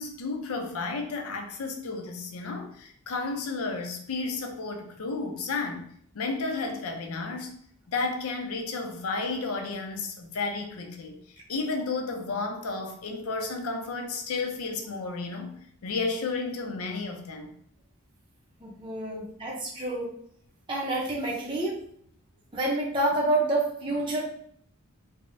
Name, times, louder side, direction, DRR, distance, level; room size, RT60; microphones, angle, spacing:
voice 1, 0.0-5.9 6.1-7.6 7.9-11.2 11.5-15.5 15.8-17.5 19.1-19.2, left 3 dB, 80° left, 4 dB, 0.5 m, -32 dB
voice 2, 18.6-20.1 20.7-21.7 22.5-24.2, right 2 dB, 20° right, -5 dB, 0.6 m, -28 dB
3.4 x 2.0 x 2.5 m, 0.64 s
head